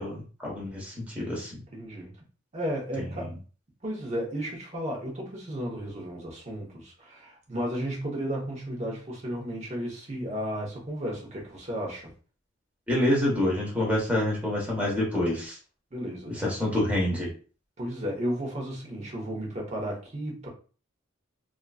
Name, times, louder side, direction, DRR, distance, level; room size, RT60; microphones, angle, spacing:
voice 1, 0.0-1.6 3.0-3.1 12.9-15.6 16.3-17.3, left 1 dB, 5° right, -3 dB, 1.1 m, -27 dB
voice 2, 1.7-2.1 2.5-3.3 3.8-12.1 15.9-16.4 17.8-20.5, equal, 35° right, -2 dB, 1.0 m, -33 dB
2.9 x 2.5 x 2.4 m, 0.38 s
head